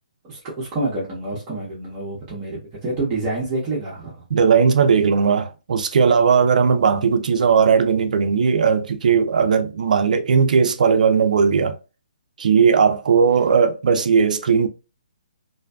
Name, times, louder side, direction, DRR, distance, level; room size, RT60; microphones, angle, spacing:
voice 1, 0.3-4.2, right 2 dB, 25° right, 0.8 m, -27 dB
voice 2, 4.3-11.8 12.4-14.7, right 6 dB, 65° right, 0.4 m, -17 dB
2.6 x 2.2 x 2.2 m
hypercardioid pair, 145°, 5 cm